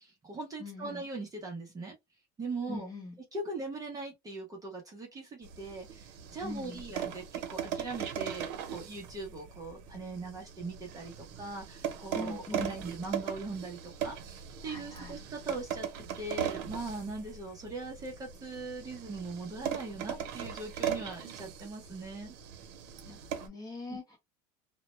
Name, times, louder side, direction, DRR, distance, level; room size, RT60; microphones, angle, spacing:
voice 1, 0.0-2.0 2.4-2.9 3.3-15.9 16.2-22.3 23.9-24.0, right 3 dB, 15° right, 0.6 m, -40 dB
voice 2, 0.6-1.0 2.7-3.2 6.4-6.8 12.1-12.9 14.6-15.2 23.1-24.2, left 3 dB, 20° left, 0.8 m, -42 dB
sound 1, 5.4-23.5, right 9 dB, 80° right, 0.7 m, -39 dB
2.1 x 2.0 x 2.9 m
cardioid pair, 155°, 20 cm